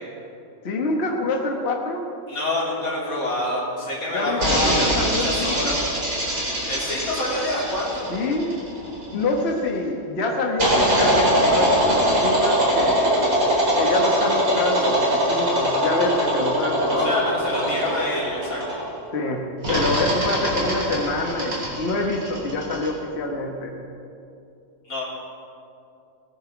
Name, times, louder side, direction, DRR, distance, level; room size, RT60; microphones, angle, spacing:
voice 1, 0.6-2.0 4.1-5.8 8.1-8.6 9.1-13.2 13.8-17.1 19.1-23.7, left 2 dB, 50° left, 1 dB, 1.5 m, -26 dB
voice 2, 2.3-4.7 5.0-5.8 6.7-8.1 17.0-18.6 24.9-25.0, left 1 dB, 90° left, -6 dB, 4.0 m, -27 dB
sound 1, 4.4-9.3 10.6-19.0 19.6-22.9, right 1 dB, 85° right, 4.5 m, -22 dB
20.5 x 9.8 x 5.0 m, 2.6 s
omnidirectional pair, 1.5 m